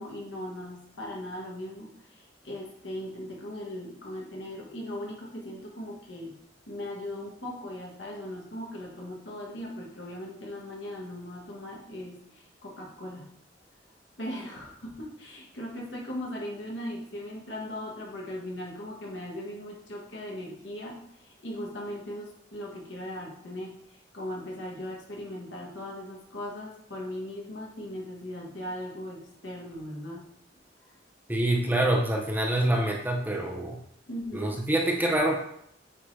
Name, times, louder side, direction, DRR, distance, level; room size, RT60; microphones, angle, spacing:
voice 1, 0.0-6.3 6.7-13.3 14.2-30.3 34.1-34.6, left 1 dB, 70° left, -2 dB, 1.6 m, -39 dB
voice 2, 31.3-33.8 34.3-35.7, right 1 dB, 10° right, -1 dB, 0.8 m, -26 dB
8.4 x 3.8 x 3.3 m, 0.72 s
head